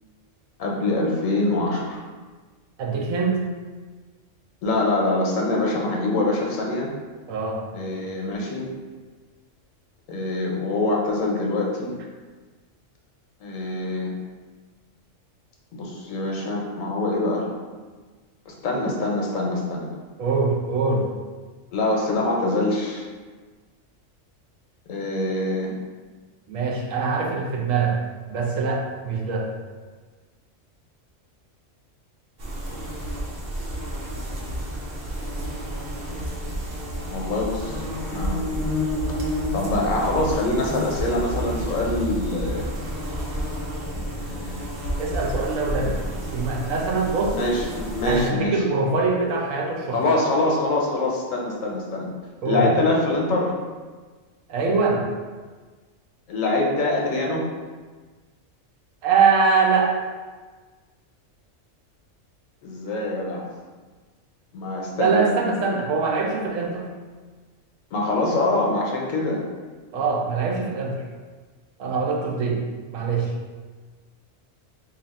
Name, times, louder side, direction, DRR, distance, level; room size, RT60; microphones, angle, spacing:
voice 1, 0.6-2.0 4.6-6.9 7.7-8.7 10.1-11.9 13.4-14.1 15.7-17.5 18.5-19.9 21.7-23.1 24.9-25.7 37.1-37.8 38.1-38.4 39.5-42.7 43.9-44.6 47.3-48.6 49.9-52.1 52.4-53.5 56.3-57.4 62.6-63.4 64.5-65.4 67.9-69.4, left 2 dB, 85° left, -1 dB, 1.2 m, -24 dB
voice 2, 2.8-3.5 7.3-7.6 20.2-21.1 26.5-28.0 28.3-29.5 45.0-46.0 46.3-47.4 48.0-50.0 52.4-52.7 54.5-55.1 59.0-60.1 65.0-66.9 69.9-71.0 71.8-72.6 72.9-73.3, right 4 dB, 85° right, 0 dB, 1.0 m, -23 dB
sound 1, 32.4-48.3, equal, 55° right, 0.8 m, -30 dB
2.8 x 2.8 x 4.1 m, 1.4 s
omnidirectional pair, 1.3 m